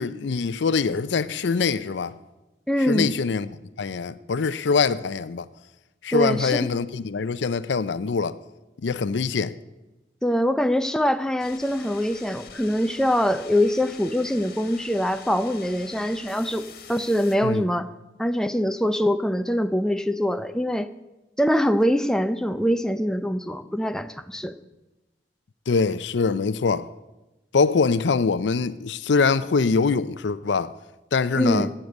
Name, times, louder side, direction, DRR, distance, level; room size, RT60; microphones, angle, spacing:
voice 1, 0.0-2.1 2.9-5.5 6.0-8.4 8.8-9.5 17.4-17.6 25.7-26.9 27.5-30.8 31.1-31.7, left 4 dB, 80° left, 0.5 m, -23 dB
voice 2, 2.7-3.2 6.1-6.7 10.2-17.9 18.2-20.9 21.4-24.5 31.4-31.7, equal, 5° left, 0.5 m, -23 dB
sound 1, 11.4-17.4, left 6 dB, 55° left, 1.7 m, -45 dB
16.5 x 6.7 x 7.9 m
head